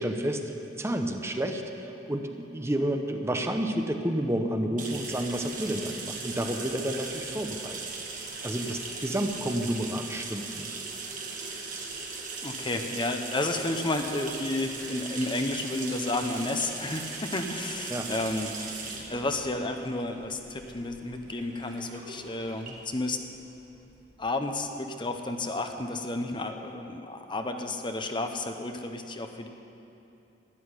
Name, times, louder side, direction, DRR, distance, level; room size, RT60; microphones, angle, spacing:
voice 1, 0.0-7.8 8.1-10.8 17.9-18.1, right 1 dB, 15° right, 5 dB, 0.9 m, -30 dB
sound 1, 4.8-24.2, right 4 dB, 50° right, 2.0 m, -39 dB
voice 2, 12.4-23.2 24.2-29.5, left 2 dB, 25° left, 5 dB, 0.9 m, -32 dB
13.0 x 11.0 x 9.8 m, 2.8 s
head